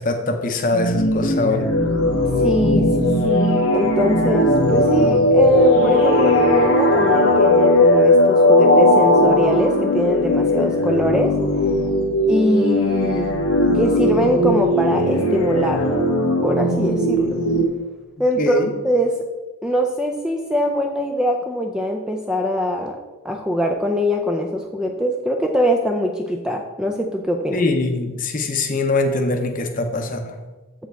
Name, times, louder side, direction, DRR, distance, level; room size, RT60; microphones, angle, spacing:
voice 1, 0.0-1.6 18.4-18.7 27.5-30.4, left 2 dB, 40° left, 5 dB, 0.7 m, -22 dB
sound 1, 0.7-17.6, left 1 dB, 80° left, 0.9 m, -17 dB
voice 2, 2.4-11.3 12.3-13.3 13.7-15.9 16.4-17.4 18.2-19.2 19.6-23.0 23.2-27.7, equal, 5° right, 2 dB, 0.4 m, -22 dB
7.6 x 6.6 x 3.4 m, 1.2 s
head